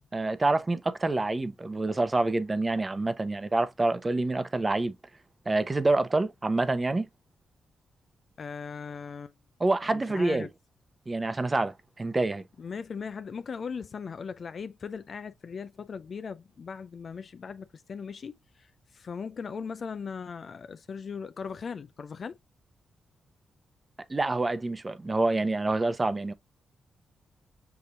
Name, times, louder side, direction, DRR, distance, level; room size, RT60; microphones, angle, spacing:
voice 1, 0.1-4.9 5.5-7.1 9.6-10.5 11.1-12.4 24.1-26.3, right 2 dB, 30° right, 0.8 m, -27 dB
voice 2, 8.4-9.3 9.9-10.5 12.6-22.4, left 6 dB, 55° left, 0.4 m, -39 dB
6.9 x 2.8 x 2.4 m
supercardioid pair, 55°, 0 cm